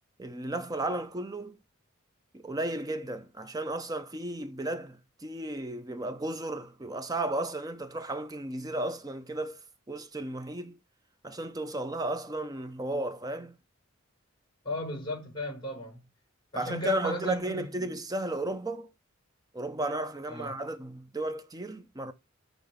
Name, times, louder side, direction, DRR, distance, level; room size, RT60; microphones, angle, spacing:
voice 1, 0.2-1.6 2.3-9.6 9.9-10.8 11.2-13.6 16.6-18.9 19.5-22.1, right 1 dB, 20° right, 0.5 m, -34 dB
voice 2, 14.6-16.0 16.5-17.9 20.3-20.6, equal, 25° left, 4.1 m, -35 dB
6.6 x 3.2 x 5.1 m
head